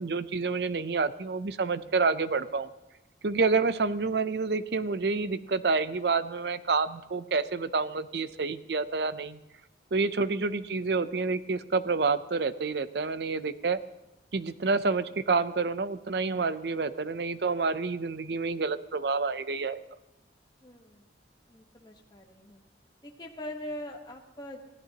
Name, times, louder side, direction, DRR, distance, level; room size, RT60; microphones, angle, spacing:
voice 1, 0.0-2.7 3.2-9.4 9.9-13.8 14.3-19.8, right 4 dB, 65° right, 13 dB, 0.6 m, -28 dB
voice 2, 10.2-10.5 20.6-21.1 21.5-22.6 23.0-24.7, left 1 dB, 25° left, 2 dB, 1.3 m, -42 dB
23.5 x 15.5 x 2.9 m, 0.97 s
head